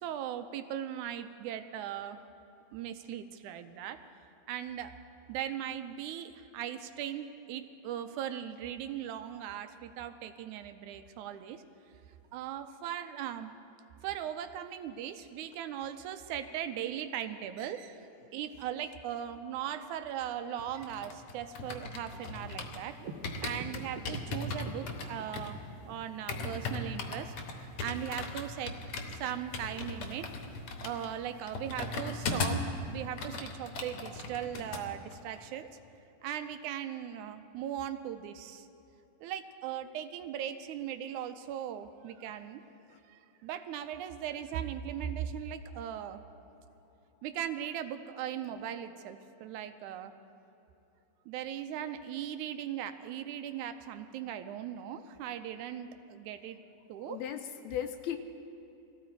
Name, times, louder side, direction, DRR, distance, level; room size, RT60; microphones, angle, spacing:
voice 1, 0.0-2.2 2.7-4.0 4.5-4.9 5.3-11.6 12.3-13.5 14.0-18.0 18.3-23.0 23.4-25.6 25.8-28.7 29.1-30.3 30.8-32.6 32.9-35.7 36.2-38.7 39.2-42.6 43.1-46.2 47.2-50.1 51.3-56.6 56.9-57.2, right 10 dB, 80° right, 9 dB, 2.0 m, -39 dB
sound 1, 20.6-22.9 23.2-32.7 33.0-34.8 35.1-35.4, left 3 dB, 60° left, 1.7 m, -38 dB
sound 2, 23.0-26.0, right 3 dB, 65° right, 2.1 m, -45 dB
voice 2, 57.0-58.2, left 10 dB, 80° left, 7 dB, 1.8 m, -36 dB
19.5 x 15.0 x 4.5 m, 2.9 s
omnidirectional pair, 3.6 m